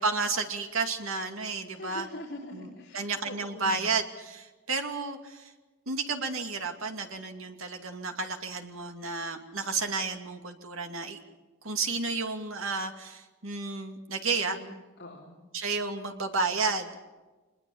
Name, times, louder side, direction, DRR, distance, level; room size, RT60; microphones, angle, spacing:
voice 1, 0.0-2.1 2.5-2.7 2.9-5.5 5.9-11.2 11.6-14.6 15.5-17.0, right 4 dB, 80° right, 5 dB, 2.5 m, -32 dB
voice 2, 1.7-3.9 14.3-14.7 15.0-15.4, left 1 dB, 50° left, -3 dB, 4.2 m, -43 dB
25.0 x 21.0 x 7.2 m, 1.2 s
head